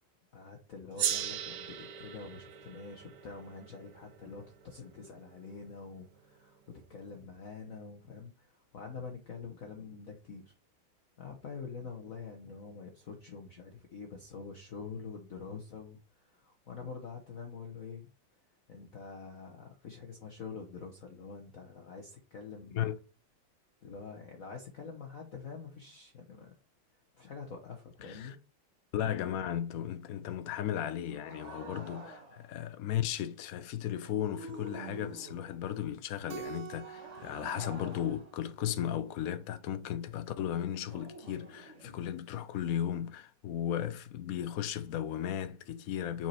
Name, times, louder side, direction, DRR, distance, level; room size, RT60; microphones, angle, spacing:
voice 1, 0.3-10.5 11.2-18.1 18.7-22.9 23.8-26.5 27.1-28.4 41.8-42.0, left 5 dB, 50° left, 1.2 m, -46 dB
Gong, 1.0-5.7, right 9 dB, 60° right, 1.3 m, -38 dB
voice 2, 28.0-28.3 28.9-46.3, left 10 dB, 75° left, 0.8 m, -35 dB
sound 1, 31.1-32.5 34.0-35.7 36.8-39.5 40.9-41.9, right 2 dB, 40° right, 1.5 m, -48 dB
Keyboard (musical), 36.3-38.9, right 10 dB, 85° right, 1.7 m, -47 dB
5.8 x 4.5 x 4.4 m
omnidirectional pair, 2.3 m